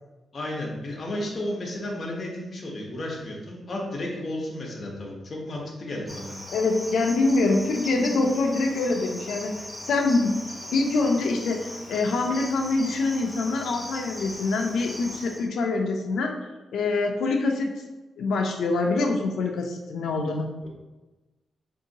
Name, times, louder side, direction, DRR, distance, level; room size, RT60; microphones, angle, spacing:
voice 1, 0.3-6.3 20.6-20.7, left 1 dB, 40° left, -2 dB, 0.8 m, -33 dB
Cricket, 6.1-15.5, left 1 dB, 5° left, 0.5 m, -39 dB
voice 2, 6.5-9.6 9.9-10.4 10.7-16.4 16.7-17.8 18.2-20.5, left 3 dB, 85° left, 3 dB, 0.4 m, -25 dB
3.8 x 2.7 x 2.7 m, 1.1 s
wide cardioid pair, 130°, 0 cm